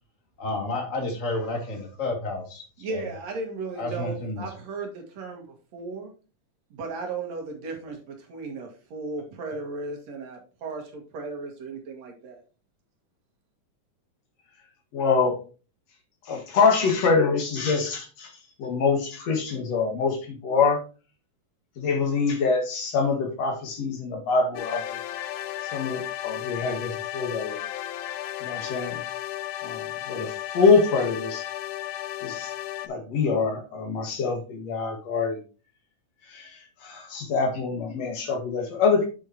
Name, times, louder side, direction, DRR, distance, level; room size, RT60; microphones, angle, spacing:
voice 1, 0.4-2.6 2.9-3.1 3.8-4.4, left 2 dB, 30° left, 2 dB, 2.2 m, -30 dB
voice 2, 2.8-5.5 5.7-6.1 6.7-12.4, right 3 dB, 65° right, 2 dB, 3.0 m, -35 dB
voice 3, 14.9-15.4 16.3-18.3 18.6-20.8 21.8-25.0 25.6-27.6 28.4-29.0 29.6-31.4 32.2-32.5 32.9-35.4 36.3-39.1, left 4 dB, 60° left, 3 dB, 2.8 m, -25 dB
sound 1, 24.6-32.9, left 13 dB, 85° left, 2.1 m, -34 dB
8.0 x 7.3 x 2.9 m, 0.34 s
omnidirectional pair, 3.5 m